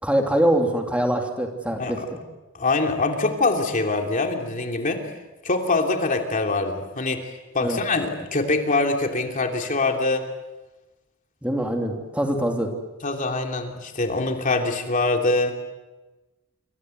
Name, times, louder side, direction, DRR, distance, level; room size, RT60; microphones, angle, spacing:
voice 1, 0.0-2.0 7.6-7.8 11.4-12.7, right 1 dB, 5° right, 3 dB, 2.9 m, -23 dB
voice 2, 2.5-5.0 5.4-10.3 13.0-15.6, left 3 dB, 40° left, 3 dB, 3.0 m, -24 dB
27.5 x 25.0 x 7.9 m, 1.1 s
head